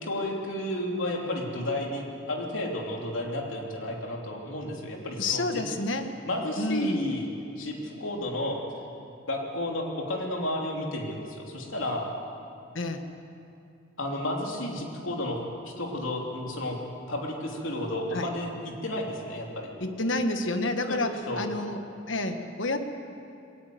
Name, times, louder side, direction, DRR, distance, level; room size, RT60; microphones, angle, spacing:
voice 1, 0.0-5.6 6.3-7.3 7.6-8.6 9.3-12.1 14.0-16.8 17.1-19.7 20.8-21.0 21.3-21.5, left 1 dB, 85° left, 0 dB, 3.2 m, -32 dB
voice 2, 5.2-6.1 6.6-7.0 12.7-13.0 18.1-18.3 19.8-22.8, left 2 dB, 70° left, 7 dB, 1.5 m, -29 dB
20.5 x 18.5 x 7.9 m, 2.6 s
head